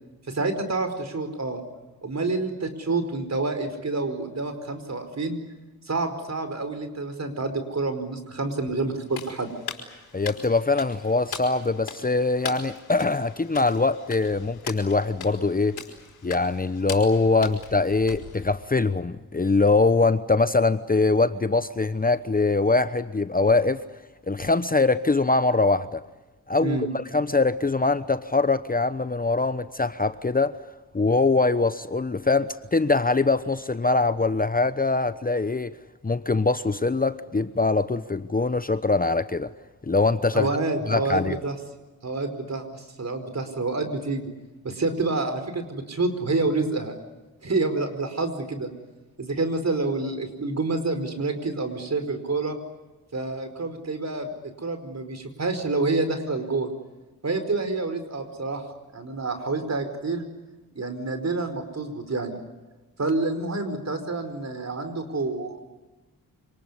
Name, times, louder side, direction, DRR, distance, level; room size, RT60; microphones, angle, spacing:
voice 1, 0.3-1.6 2.0-5.4 5.9-9.5 26.6-26.9 40.3-41.5 42.0-44.2 44.6-46.9 47.4-48.7 49.2-52.6 53.1-56.7 57.2-58.6 58.9-60.2 60.7-62.4 63.0-65.7, right 3 dB, 45° right, 4.9 m, -28 dB
sound 1, 9.1-18.8, left 7 dB, 85° left, 4.2 m, -40 dB
voice 2, 10.1-15.8 16.2-23.8 24.3-26.0 26.5-30.6 30.9-35.8 36.0-39.5 39.8-40.5 40.9-41.3, left 3 dB, 25° left, 1.0 m, -23 dB
27.0 x 19.5 x 9.8 m
cardioid pair, 50°, 36 cm